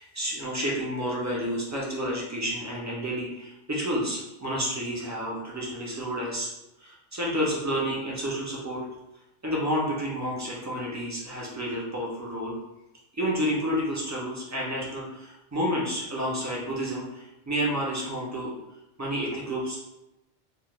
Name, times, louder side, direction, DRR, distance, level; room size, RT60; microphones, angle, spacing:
voice 1, 0.0-6.5 6.8-8.8 9.4-12.6 13.1-18.5 19.0-19.8, equal, 30° right, -4 dB, 0.3 m, -30 dB
2.4 x 2.1 x 3.0 m, 0.93 s
omnidirectional pair, 1.1 m